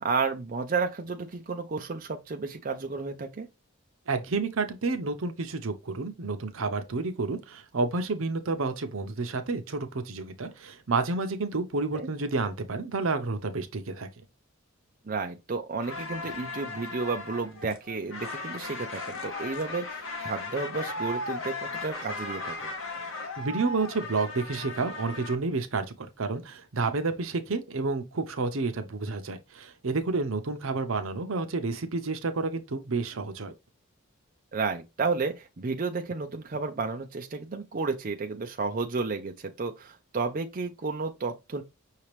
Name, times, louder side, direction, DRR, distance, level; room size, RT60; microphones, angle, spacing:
voice 1, 0.0-3.5 11.9-12.1 15.1-22.7 34.5-41.6, right 4 dB, 40° right, 0.6 m, -32 dB
voice 2, 4.1-14.1 23.4-33.5, right 3 dB, 75° right, 0.8 m, -30 dB
sound 1, 15.8-25.4, left 2 dB, 65° left, 1.0 m, -37 dB
5.8 x 2.8 x 3.2 m
head